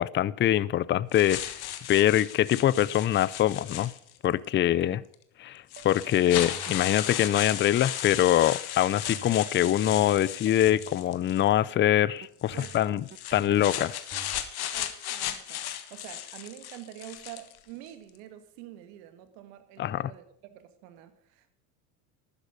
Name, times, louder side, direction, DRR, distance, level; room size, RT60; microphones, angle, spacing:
voice 1, 0.0-1.6 1.9-3.9 4.2-5.0 5.4-13.0 13.3-13.9 19.8-20.1, left 12 dB, 25° left, 21 dB, 0.4 m, -24 dB
sound 1, 1.1-4.3 5.1-5.2 5.7-11.5 12.4-17.6, left 12 dB, 50° left, 1.5 m, -36 dB
voice 2, 4.5-5.1 12.5-13.1 14.7-21.5, right 12 dB, 70° right, 10 dB, 2.1 m, -47 dB
sound 2, 5.8-7.0 9.1-11.2 12.2-14.5, right 8 dB, 20° right, 0.7 m, -47 dB
12.0 x 9.7 x 5.3 m, 0.70 s
supercardioid pair, 90°, 48 cm